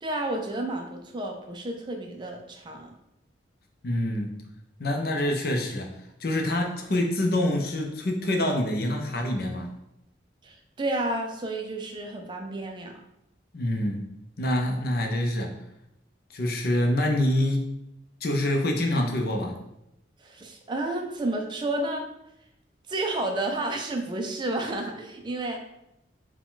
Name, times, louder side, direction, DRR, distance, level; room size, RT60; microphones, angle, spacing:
voice 1, 0.0-2.9 10.4-13.0 20.2-22.1 22.9-25.6, right 2 dB, 25° right, 3 dB, 0.4 m, -31 dB
voice 2, 3.8-4.4 4.8-5.9 6.2-9.7 13.5-14.0 14.4-15.5 16.3-17.8 18.2-19.5, left 1 dB, 55° left, 2 dB, 0.6 m, -26 dB
4.7 x 2.2 x 3.8 m, 0.85 s
head